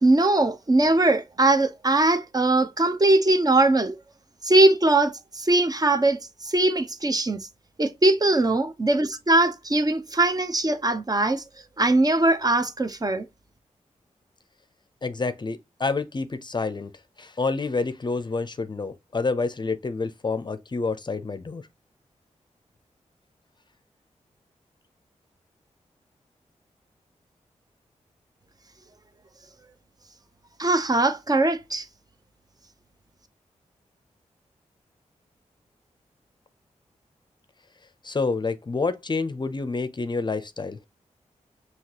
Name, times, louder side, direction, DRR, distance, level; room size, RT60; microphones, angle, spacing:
voice 1, 0.0-3.9 4.4-7.4 7.8-11.4 11.8-13.3 30.6-31.8, right 2 dB, 30° right, 0.7 m, -21 dB
voice 2, 15.0-16.9 17.2-21.7 38.0-40.8, left 4 dB, 35° left, 0.5 m, -28 dB
5.6 x 2.9 x 2.9 m
cardioid pair, 60°, 13 cm